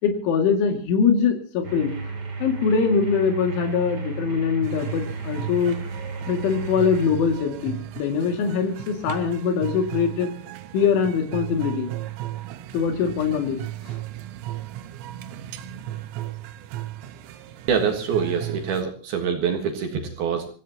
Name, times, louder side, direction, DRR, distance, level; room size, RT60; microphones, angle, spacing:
voice 1, 0.0-1.9 2.4-5.8 6.3-10.3 10.7-11.9 12.7-13.6 13.8-14.0, left 6 dB, 70° left, 4 dB, 4.7 m, -22 dB
sound 1, 1.6-7.1, right 4 dB, 30° right, 3.8 m, -33 dB
sound 2, 4.6-18.8, right 13 dB, 85° right, 3.6 m, -36 dB
voice 2, 17.7-20.5, right 6 dB, 60° right, 4 dB, 2.9 m, -25 dB
26.0 x 16.0 x 2.9 m, 0.40 s
omnidirectional pair, 5.8 m